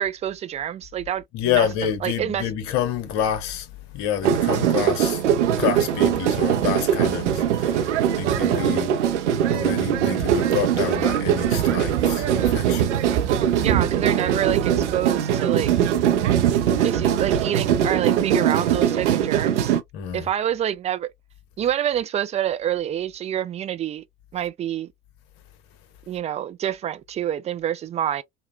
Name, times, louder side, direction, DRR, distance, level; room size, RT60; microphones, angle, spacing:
voice 1, 0.0-1.7 2.0-2.5 13.6-15.7 16.4-16.5 16.8-19.7 20.1-21.1 21.6-24.0 24.3-24.9 26.1-28.2, right 10 dB, 20° right, 0.3 m, -27 dB
voice 2, 1.3-3.7 3.9-5.2 5.5-9.0 9.5-12.9 19.9-20.3, left 9 dB, 50° left, 0.9 m, -28 dB
sound 1, 4.2-19.8, right 9 dB, 75° right, 0.5 m, -21 dB
3.0 x 2.1 x 2.2 m
figure-of-eight pair, 65°, 36 cm